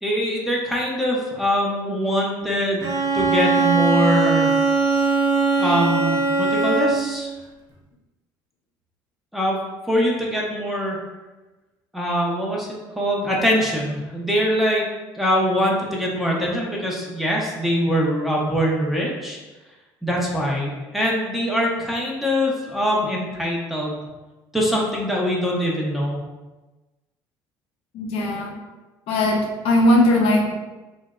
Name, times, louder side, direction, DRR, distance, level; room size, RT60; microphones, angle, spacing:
voice 1, 0.0-2.9 3.1-4.5 5.6-7.3 9.3-9.6 9.9-11.0 11.9-14.9 15.1-19.4 20.0-24.0 24.5-26.2, equal, ahead, -3 dB, 0.6 m, -23 dB
Bowed string instrument, 2.8-7.2, right 4 dB, 35° right, 0.7 m, -20 dB
voice 2, 27.9-28.6 29.1-30.5, left 1 dB, 70° left, 1 dB, 0.4 m, -19 dB
2.6 x 2.0 x 2.3 m, 1.1 s
supercardioid pair, 80°, 10 cm